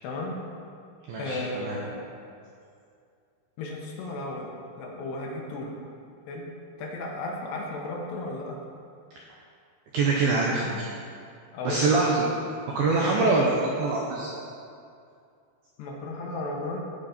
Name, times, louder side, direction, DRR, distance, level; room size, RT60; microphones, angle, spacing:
voice 1, 0.0-0.4 1.2-2.0 3.6-4.5 4.8-5.7 6.3-6.5 6.8-8.6 11.5-12.1 15.8-16.8, left 2 dB, 75° left, -1 dB, 2.8 m, -34 dB
voice 2, 1.1-1.8 9.9-10.9 11.6-12.3 12.8-14.3, right 3 dB, 85° right, -2 dB, 2.1 m, -24 dB
15.0 x 5.5 x 4.2 m, 2.4 s
omnidirectional pair, 5.4 m